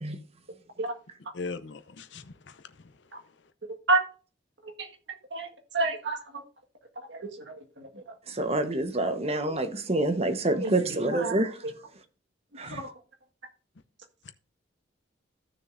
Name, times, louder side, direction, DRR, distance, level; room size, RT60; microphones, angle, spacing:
voice 1, 1.3-2.6 12.7-12.8 14.3-14.4, left 4 dB, 65° left, 0.7 m, -39 dB
voice 2, 5.7-6.4 7.1-7.9 10.6-11.4 12.7-12.9, right 2 dB, 65° right, 1.7 m, -29 dB
voice 3, 8.3-11.5 12.6-12.8, right 2 dB, 30° right, 1.1 m, -27 dB
14.5 x 6.5 x 2.6 m
head